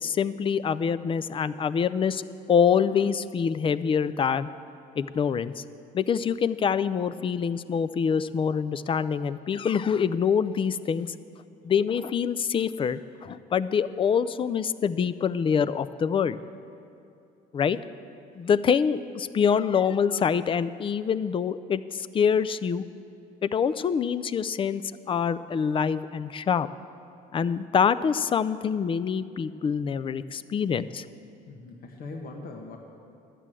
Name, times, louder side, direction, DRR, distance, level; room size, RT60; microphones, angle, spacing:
voice 1, 0.0-4.5 5.0-5.6 5.9-11.1 11.6-16.4 17.5-17.8 18.4-22.8 23.4-24.8 25.1-26.7 27.3-31.0, left 7 dB, 30° left, 15 dB, 0.4 m, -25 dB
voice 2, 31.5-32.8, left 3 dB, 60° left, 1 dB, 1.3 m, -40 dB
11.5 x 8.3 x 7.5 m, 2.6 s
cardioid pair, 110°, 17 cm